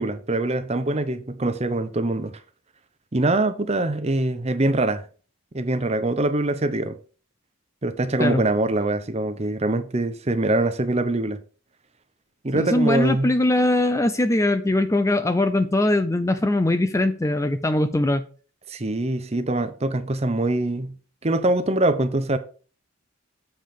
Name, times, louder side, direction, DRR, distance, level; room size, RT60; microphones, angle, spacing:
voice 1, 0.0-2.3 3.1-5.0 5.5-7.0 7.8-11.4 12.4-13.3 18.7-20.9 21.2-22.4, right 2 dB, 30° right, 0.8 m, -23 dB
voice 2, 12.5-18.2, left 1 dB, 15° left, 0.4 m, -21 dB
7.4 x 5.2 x 5.6 m
head